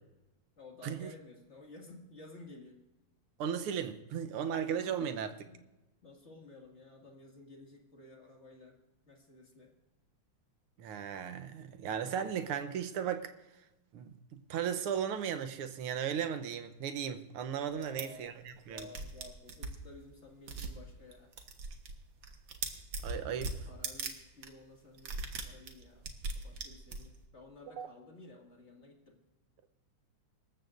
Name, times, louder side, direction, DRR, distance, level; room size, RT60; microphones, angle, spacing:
voice 1, 0.6-2.8 4.8-5.6 6.0-8.8 9.1-9.7 17.7-18.4 18.6-21.3 23.2-23.4 23.6-29.2, left 2 dB, 30° left, 2.3 m, -54 dB
voice 2, 3.4-5.3 10.8-13.3 13.9-18.9 23.0-23.5 27.8-27.9, right 8 dB, 90° right, 1.9 m, -36 dB
sound 1, 17.8-18.0 18.5-18.6 18.8-19.8 20.5-20.8 21.1-22.0 22.2-24.1 24.4-24.5 25.0-27.2, right 3 dB, 65° right, 2.0 m, -39 dB
25.0 x 14.0 x 2.6 m
omnidirectional pair, 2.4 m